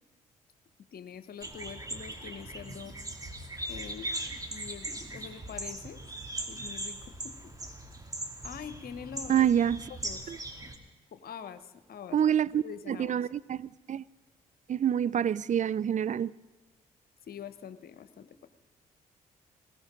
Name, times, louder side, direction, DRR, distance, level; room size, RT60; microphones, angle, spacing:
voice 1, 0.9-3.0 3.7-4.1 4.5-6.0 6.5-7.5 8.4-9.5 9.9-10.3 11.1-13.2 17.3-18.5, left 8 dB, 55° left, 1.1 m, -44 dB
sound 1, 1.4-10.8, right 1 dB, 20° right, 2.6 m, -39 dB
voice 2, 9.3-9.8 10.3-10.4 12.1-14.0 14.7-16.3, right 9 dB, 40° right, 0.5 m, -27 dB
20.0 x 18.5 x 3.8 m
hypercardioid pair, 45°, 18 cm